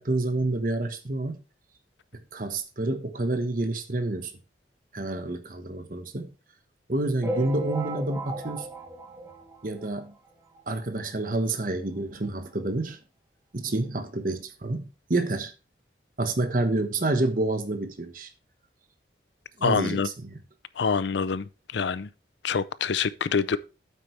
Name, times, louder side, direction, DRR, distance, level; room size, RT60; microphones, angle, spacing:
voice 1, 0.0-1.4 2.3-4.3 4.9-6.3 6.9-8.7 9.6-10.1 10.7-13.0 13.5-15.5 16.2-18.3 19.6-20.4, right 2 dB, 45° right, 1.1 m, -28 dB
sound 1, 7.2-10.1 10.6-10.7 10.8-11.0 11.3-11.4 12.2-12.3 12.8-12.9, right 2 dB, 15° right, 1.5 m, -35 dB
voice 2, 19.6-20.1 20.8-22.1 22.4-23.6, left 5 dB, 75° left, 0.5 m, -26 dB
9.1 x 8.0 x 3.2 m
head